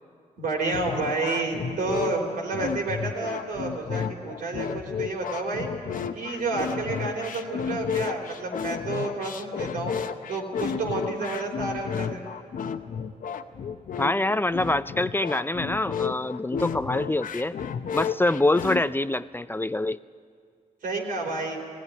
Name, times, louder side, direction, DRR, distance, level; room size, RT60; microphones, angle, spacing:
voice 1, 0.4-5.7 6.1-9.9 10.3-12.3 20.8-21.6, right 3 dB, 90° right, 0 dB, 3.7 m, -30 dB
sound 1, 0.7-18.8, left 7 dB, 75° left, 0.9 m, -32 dB
voice 2, 14.0-17.5 17.9-20.0, left 2 dB, 15° left, 14 dB, 0.4 m, -25 dB
17.0 x 16.5 x 9.9 m, 2.2 s
cardioid pair, 70°, 14 cm